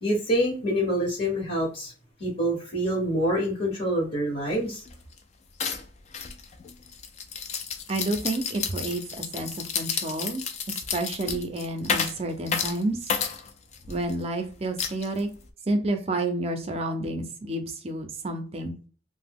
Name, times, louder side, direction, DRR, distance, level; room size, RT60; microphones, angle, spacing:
voice 1, 0.0-1.9 2.2-4.9, equal, 50° left, -3 dB, 0.9 m, -26 dB
sound 1, 4.5-4.6 4.9-5.2 5.6-14.1 14.8-15.5, left 6 dB, 35° left, 0.3 m, -31 dB
voice 2, 7.9-13.1 13.9-15.3 15.7-18.7, right 2 dB, 30° right, 6 dB, 0.5 m, -30 dB
2.8 x 2.0 x 3.4 m, 0.38 s
head